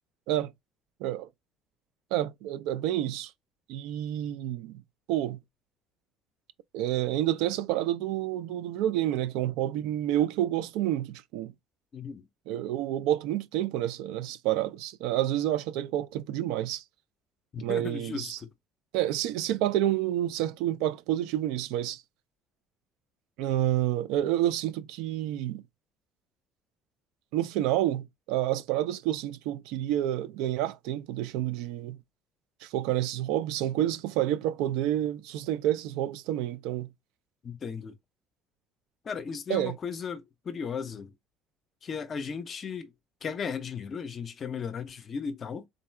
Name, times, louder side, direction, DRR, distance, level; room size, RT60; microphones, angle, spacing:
voice 1, 2.1-3.3 3.7-4.8 5.1-5.4 6.7-11.5 12.5-16.8 17.6-18.4 18.9-22.0 23.4-25.6 27.3-32.0 32.6-36.9 39.5-39.8, right 13 dB, 90° right, 0.4 m, -29 dB
voice 2, 11.9-12.3 17.5-18.5 37.4-38.0 39.0-41.1 41.8-42.9 43.2-45.7, left 6 dB, 25° left, 0.5 m, -36 dB
3.8 x 2.3 x 4.2 m
cardioid pair, 180°, 0 cm